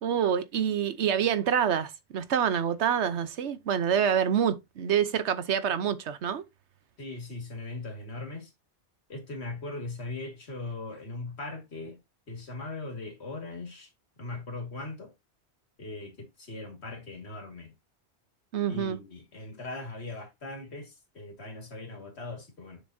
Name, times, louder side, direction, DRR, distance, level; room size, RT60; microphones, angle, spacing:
voice 1, 0.0-6.4 18.5-19.0, right 8 dB, 85° right, 1.1 m, -27 dB
voice 2, 7.0-8.5 9.1-12.0 12.3-13.9 14.2-15.1 15.8-17.7 18.7-22.8, left 2 dB, 70° left, 2.3 m, -39 dB
7.0 x 6.4 x 2.7 m
omnidirectional pair, 1.1 m